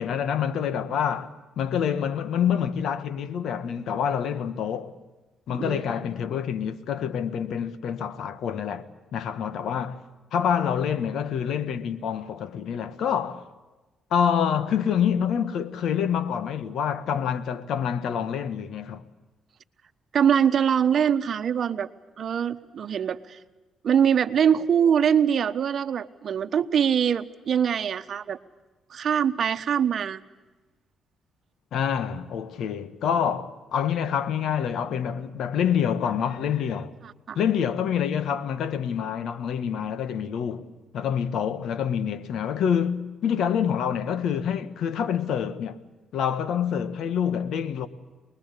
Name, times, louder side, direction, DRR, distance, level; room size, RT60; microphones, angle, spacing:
voice 1, 0.0-4.9 5.5-8.9 9.1-10.0 10.3-13.4 14.1-19.0 31.7-36.9 37.3-45.8 46.1-47.9, left 8 dB, 75° left, 1.6 m, -27 dB
voice 2, 5.6-5.9 20.1-21.9 22.2-23.4 23.8-28.4 28.9-30.2 37.3-37.4, right 8 dB, 55° right, 1.2 m, -23 dB
24.5 x 21.0 x 8.3 m
cardioid pair, 90°, 0 cm